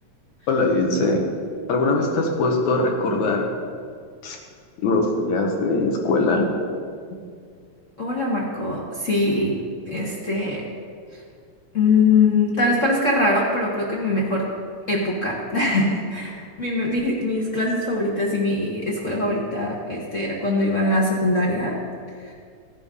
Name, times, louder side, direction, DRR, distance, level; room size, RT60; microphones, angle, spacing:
voice 1, 0.5-1.3 1.7-3.5 4.2-4.4 4.8-6.5, left 2 dB, 75° left, 1 dB, 2.7 m, -21 dB
voice 2, 8.0-9.6 9.9-10.6 11.1-11.2 11.7-14.5 14.9-21.8 22.2-22.3, left 2 dB, 45° left, -3 dB, 1.0 m, -22 dB
15.5 x 10.5 x 3.7 m, 2.1 s
omnidirectional pair, 3.4 m